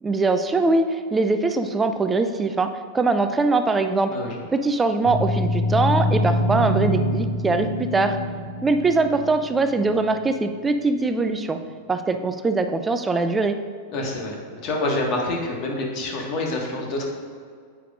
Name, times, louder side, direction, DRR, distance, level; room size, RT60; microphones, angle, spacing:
voice 1, 0.0-4.1 4.5-8.2 8.6-11.6 11.9-13.6, right 3 dB, 15° right, 8 dB, 0.5 m, -22 dB
voice 2, 4.1-4.5 13.9-17.1, left 2 dB, 40° left, 0 dB, 1.7 m, -27 dB
sound 1, 5.0-10.1, left 1 dB, 80° right, 1.1 m, -25 dB
9.9 x 8.2 x 2.6 m, 2.1 s
figure-of-eight pair, 90°, 0 cm